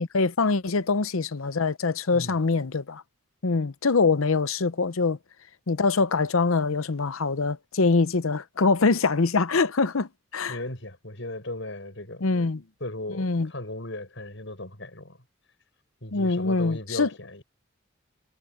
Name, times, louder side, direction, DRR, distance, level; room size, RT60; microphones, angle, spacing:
voice 1, 0.0-3.0 3.4-5.2 5.7-10.6 12.2-12.6 13.2-13.5 16.1-17.1, left 4 dB, 85° left, 0.8 m, -24 dB
voice 2, 10.5-12.3 12.8-15.2 16.0-17.4, left 1 dB, 65° left, 6.8 m, -37 dB
head